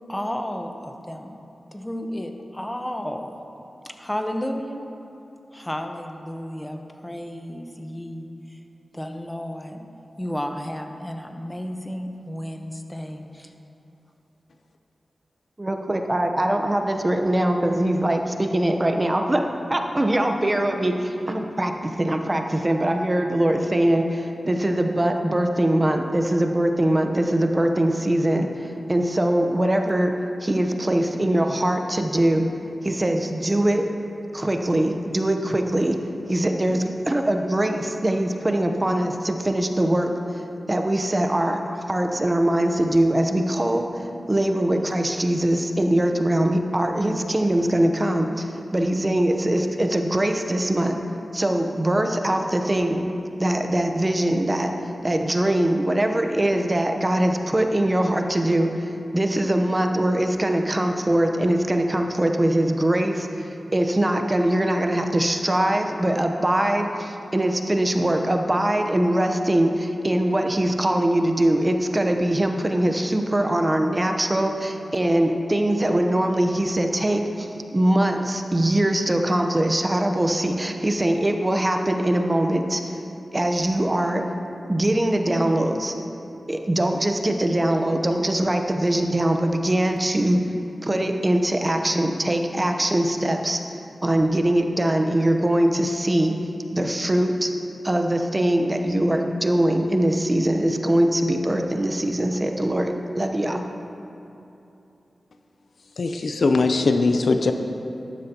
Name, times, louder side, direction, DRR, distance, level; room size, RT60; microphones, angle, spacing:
voice 1, 0.1-1.4 1.7-3.3 3.8-4.8 5.5-8.6 8.9-9.9 10.2-13.5, equal, 10° left, 4 dB, 1.0 m, -32 dB
voice 2, 15.6-28.5 28.9-30.1 30.4-32.5 32.8-33.8 34.3-36.0 36.3-40.1 40.7-43.9 44.3-51.0 51.3-53.1 53.4-54.7 55.0-82.9 83.3-84.2 84.7-85.9 86.5-90.4 90.8-93.6 94.0-96.3 96.7-97.5 97.8-103.6, right 1 dB, 25° right, 4 dB, 0.9 m, -22 dB
voice 3, 106.0-107.5, left 3 dB, 75° left, 6 dB, 0.6 m, -20 dB
12.5 x 11.5 x 2.9 m, 2.9 s
cardioid pair, 55°, 0 cm